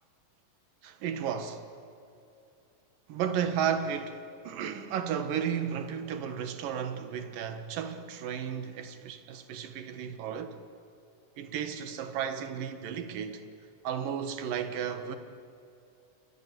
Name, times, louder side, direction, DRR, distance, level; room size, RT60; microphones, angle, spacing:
voice 1, 0.8-1.6 3.1-10.6 11.4-13.4 13.8-15.2, right 8 dB, 75° right, 3.1 m, -33 dB
29.0 x 25.0 x 7.6 m
omnidirectional pair, 4.0 m